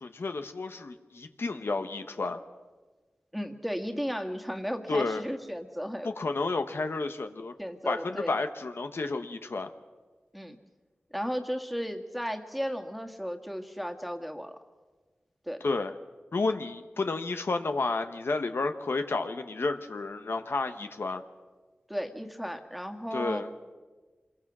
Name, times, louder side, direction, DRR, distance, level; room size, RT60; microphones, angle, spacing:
voice 1, 0.0-2.4 4.9-5.2 6.0-7.5 7.8-9.7 15.6-15.9 16.3-21.2 23.1-23.5, left 3 dB, 80° left, 7 dB, 1.1 m, -31 dB
voice 2, 3.3-6.1 7.6-8.4 10.3-10.6 11.1-14.6 15.5-15.6 21.9-23.5, equal, ahead, 5 dB, 1.9 m, -34 dB
25.5 x 22.0 x 6.2 m, 1.3 s
wide cardioid pair, 55°, 4 cm